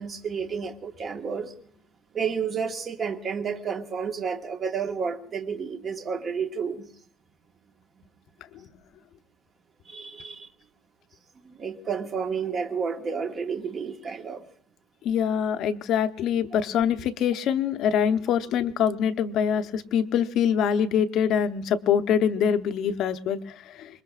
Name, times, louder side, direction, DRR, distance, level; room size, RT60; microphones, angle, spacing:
voice 1, 0.0-1.5 2.1-6.9 9.8-10.5 11.4-14.4, right 6 dB, 30° right, 5 dB, 1.5 m, -31 dB
voice 2, 15.0-24.0, left 8 dB, 55° left, 7 dB, 0.8 m, -24 dB
25.5 x 21.5 x 2.5 m, 0.63 s
cardioid pair, 145°, 0 cm